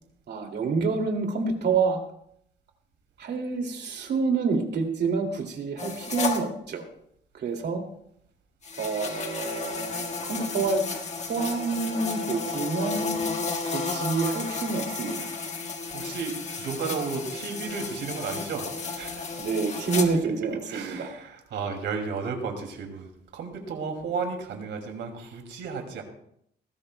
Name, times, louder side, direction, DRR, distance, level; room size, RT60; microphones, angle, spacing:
voice 1, 0.3-2.0 3.2-6.8 7.3-7.8 8.8-10.8 11.3-13.2 13.6-15.3 19.4-21.1, right 4 dB, 70° right, 3 dB, 2.5 m, -28 dB
sound 1, 5.8-6.4 8.6-20.0, left 4 dB, 40° left, 1.6 m, -32 dB
voice 2, 15.8-19.3 19.9-20.0 20.7-26.0, right 5 dB, 85° right, 3 dB, 2.5 m, -33 dB
19.0 x 15.5 x 2.2 m, 0.72 s
cardioid pair, 115°, 18 cm